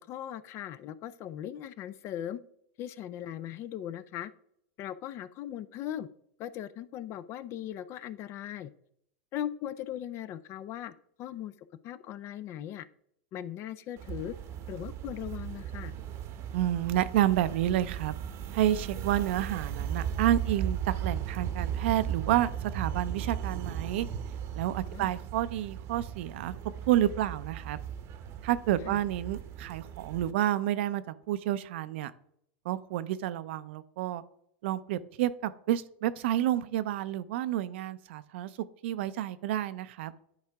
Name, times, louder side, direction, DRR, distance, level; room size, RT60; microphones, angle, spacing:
voice 1, 0.0-2.4 2.8-4.3 4.8-6.1 6.4-8.7 9.3-12.9 13.3-14.3 14.7-15.9 24.9-25.1 28.8-29.0, left 11 dB, 45° left, 15 dB, 0.5 m, -39 dB
sound 1, 14.0-30.3, right 9 dB, 45° right, 0.8 m, -37 dB
voice 2, 16.5-18.2 18.5-24.1 24.5-26.5 26.9-27.8 28.4-32.1 32.6-34.2 34.6-38.5 38.8-40.1, right 12 dB, 70° right, 14 dB, 0.5 m, -29 dB
10.5 x 4.7 x 3.5 m, 0.71 s
hypercardioid pair, 110°, 7 cm